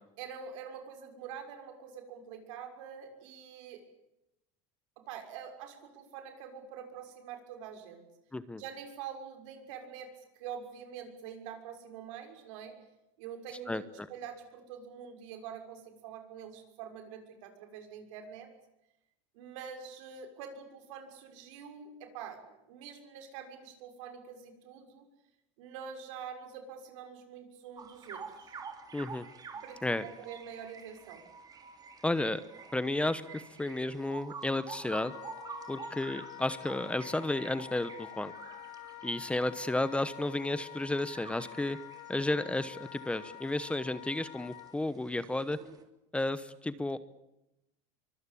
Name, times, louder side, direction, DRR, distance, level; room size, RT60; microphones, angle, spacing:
voice 1, 0.2-3.8 5.0-8.0 8.5-12.7 13.2-13.8 14.1-18.5 19.3-25.0 25.6-28.5 29.6-31.2, right 7 dB, 75° right, 5 dB, 6.3 m, -45 dB
voice 2, 13.7-14.1 28.9-29.2 29.8-30.0 32.0-32.4 32.7-35.1 35.7-38.3 39.0-41.8 42.1-45.6 46.1-47.0, left 2 dB, 5° left, 14 dB, 1.0 m, -32 dB
sound 1, 27.8-45.8, right 5 dB, 25° right, 3.3 m, -49 dB
Wind instrument woodwind instrument, 34.9-44.8, left 15 dB, 65° left, 2.0 m, -48 dB
24.0 x 23.5 x 8.6 m, 0.89 s
supercardioid pair, 135°, 16 cm